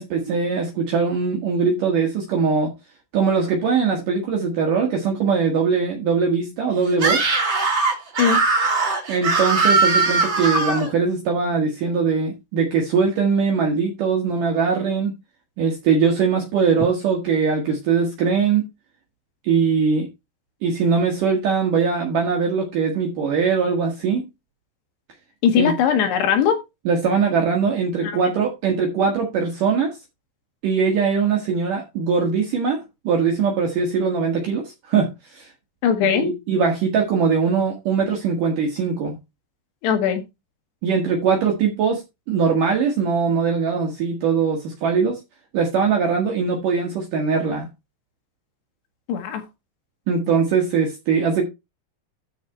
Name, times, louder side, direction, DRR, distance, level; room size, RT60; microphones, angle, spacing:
voice 1, 0.0-2.7 3.1-7.3 9.1-15.1 15.6-18.6 19.4-20.1 20.6-24.2 25.6-25.7 26.8-30.0 30.6-35.5 36.0-39.2 40.8-42.0 42.3-45.2 45.5-47.7 50.1-51.5, right 5 dB, 60° right, 3.1 m, -21 dB
Screaming, 6.9-10.9, right 3 dB, 30° right, 3.1 m, -20 dB
voice 2, 25.4-26.6 28.0-28.3 35.8-36.3 39.8-40.2 49.1-49.4, left 8 dB, 80° left, 3.8 m, -20 dB
13.0 x 4.7 x 4.4 m
omnidirectional pair, 4.8 m